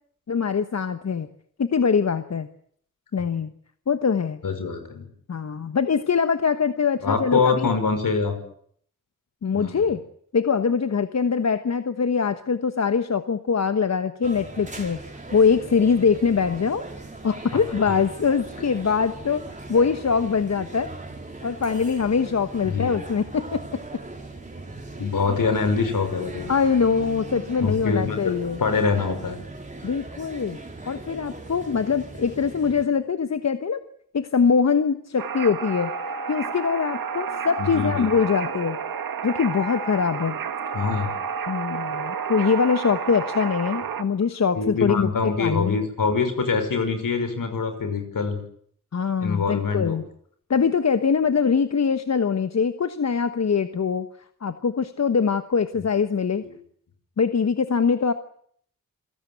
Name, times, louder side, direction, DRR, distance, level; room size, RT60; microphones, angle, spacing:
voice 1, 0.3-1.3 1.6-2.5 3.1-3.5 3.9-4.4 5.3-7.7 9.4-10.0 10.3-15.0 15.3-16.8 17.2-19.4 19.7-20.9 21.4-23.8 26.5-28.6 29.8-30.6 30.9-33.8 34.1-35.9 36.3-38.8 39.2-40.4 41.5-45.8 48.9-50.0 50.5-54.1 54.4-56.4 57.2-58.1, left 6 dB, 50° left, 10 dB, 1.2 m, -23 dB
voice 2, 4.4-5.1 7.0-8.3 9.5-9.8 22.6-23.0 25.0-26.5 27.6-28.3 28.6-29.4 37.6-38.1 40.7-41.1 44.5-48.4 49.2-50.0 56.5-56.6, left 5 dB, 75° left, 8 dB, 5.9 m, -24 dB
sound 1, 14.2-32.9, right 2 dB, 20° right, 4.4 m, -39 dB
sound 2, 35.2-44.0, right 6 dB, 85° right, 1.7 m, -30 dB
27.5 x 17.0 x 9.2 m, 0.64 s
wide cardioid pair, 115°, 33 cm